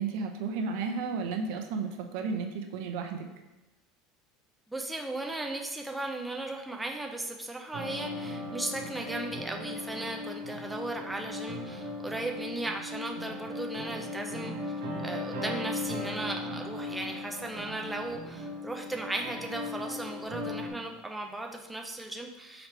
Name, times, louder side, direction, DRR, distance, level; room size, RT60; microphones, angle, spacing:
voice 1, 0.0-3.3, right 5 dB, 70° right, 4 dB, 0.6 m, -33 dB
voice 2, 4.7-14.5 15.0-22.7, right 2 dB, 5° right, 1 dB, 0.3 m, -36 dB
sound 1, 7.7-20.7, left 2 dB, 85° right, 1.1 m, -38 dB
4.9 x 3.1 x 3.3 m, 1.1 s
cardioid pair, 155°, 0 cm